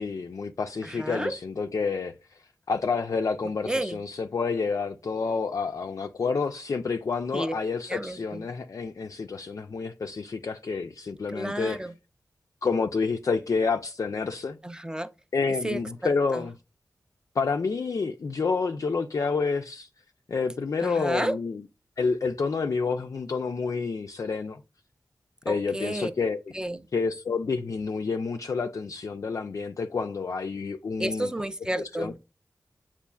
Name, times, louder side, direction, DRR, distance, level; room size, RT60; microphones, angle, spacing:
voice 1, 0.0-2.1 2.7-11.8 12.6-14.6 15.3-16.5 17.4-19.9 20.3-21.6 22.0-24.6 25.5-26.4 26.9-31.3 31.8-32.1, left 4 dB, 55° left, 0.3 m, -29 dB
voice 2, 0.8-1.3 3.6-4.0 7.3-7.5 7.9-8.4 11.3-11.9 14.6-15.1 15.6-15.8 16.3-16.5 20.8-21.3 25.5-26.1 26.5-26.9 31.0-32.2, right 1 dB, 10° right, 0.4 m, -31 dB
6.8 x 2.4 x 2.3 m
cardioid pair, 55°, 7 cm